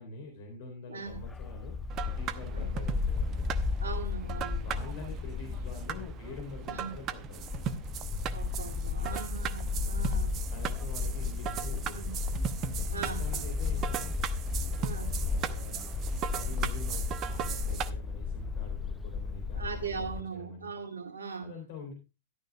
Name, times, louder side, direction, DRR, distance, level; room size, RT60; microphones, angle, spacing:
voice 1, 0.0-3.5 4.6-7.7 9.0-9.4 9.8-10.0 10.5-14.2 15.2-20.7 21.4-21.9, left 2 dB, 50° left, 3.5 m, -45 dB
Bark, 1.1-20.2, left 4 dB, 10° left, 0.6 m, -34 dB
sound 1, 1.9-17.9, right 9 dB, 30° right, 0.8 m, -38 dB
voice 2, 3.8-4.7 6.7-6.9 8.3-10.4 11.9-12.1 12.9-13.5 14.8-15.1 19.6-21.5, right 5 dB, 70° right, 2.3 m, -40 dB
sound 2, 10.4-17.8, equal, 15° right, 4.0 m, -56 dB
13.5 x 11.5 x 2.3 m
figure-of-eight pair, 100°, 0 cm